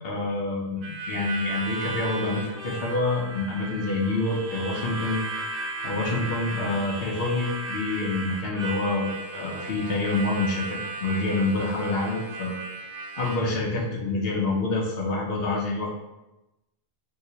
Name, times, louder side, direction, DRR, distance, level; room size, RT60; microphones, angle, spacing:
voice 1, 0.0-5.2 5.8-12.6 13.2-15.9, left 2 dB, 65° left, -2 dB, 0.8 m, -27 dB
Harmonica, 0.8-13.4, right 2 dB, 60° right, 0.8 m, -35 dB
3.1 x 2.7 x 2.8 m, 0.98 s
omnidirectional pair, 1.1 m